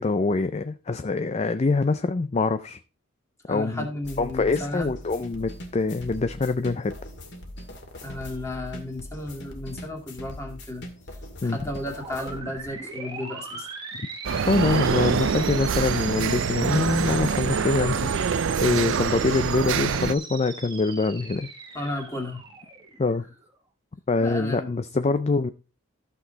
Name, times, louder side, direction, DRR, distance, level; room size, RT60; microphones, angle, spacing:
voice 1, 0.0-2.8 3.5-3.9 4.2-6.9 11.4-11.6 14.5-21.5 23.0-23.2 24.1-25.5, left 3 dB, 30° left, 0.4 m, -24 dB
voice 2, 3.5-4.9 8.0-10.9 11.4-13.7 21.7-22.6 24.2-24.8, left 1 dB, 15° left, 2.3 m, -34 dB
sound 1, 4.0-12.4, equal, 55° left, 2.1 m, -41 dB
sound 2, 11.8-23.5, right 4 dB, 20° right, 1.5 m, -39 dB
sound 3, 14.2-20.1, right 6 dB, 65° right, 0.4 m, -25 dB
14.0 x 6.1 x 4.0 m
head